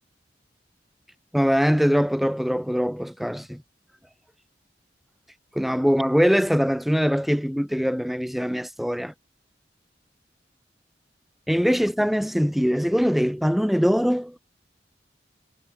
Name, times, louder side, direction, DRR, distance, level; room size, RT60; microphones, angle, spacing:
voice 1, 1.3-3.6 5.5-9.1 11.5-14.4, equal, ahead, 0.6 m, -22 dB
head